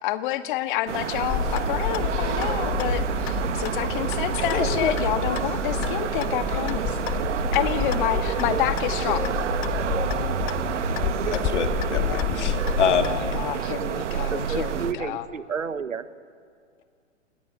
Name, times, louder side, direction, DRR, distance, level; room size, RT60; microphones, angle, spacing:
voice 1, 0.0-7.2 7.5-9.4 12.8-15.3, left 13 dB, 40° left, 9 dB, 1.7 m, -29 dB
sound 1, 0.9-14.9, right 8 dB, 70° right, 1.5 m, -28 dB
Clock, 1.3-13.4, left 20 dB, 20° left, 0.6 m, -30 dB
voice 2, 4.5-4.9 11.2-13.2, left 7 dB, 65° left, 6 dB, 2.9 m, -26 dB
voice 3, 14.5-16.1, right 6 dB, 85° right, 12 dB, 1.6 m, -31 dB
28.5 x 20.0 x 8.9 m, 2.1 s
hypercardioid pair, 125°, 38 cm